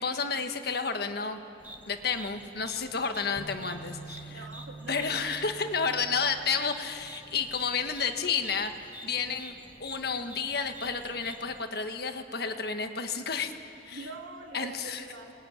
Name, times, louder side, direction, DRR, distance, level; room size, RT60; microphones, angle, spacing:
voice 1, 0.0-1.4 1.9-4.5 4.9-9.5 9.8-13.6 13.8-14.1 14.5-15.0, left 5 dB, 55° left, 6 dB, 1.6 m, -31 dB
sound 1, 1.6-11.6, right 1 dB, 10° right, 1.4 m, -49 dB
sound 2, 3.4-7.4, right 2 dB, 10° left, 4.1 m, -46 dB
voice 2, 4.2-5.2 5.8-6.0 9.2-9.4 13.9-15.3, right 3 dB, 90° right, 1 dB, 3.2 m, -44 dB
29.0 x 20.5 x 9.7 m, 3.0 s
head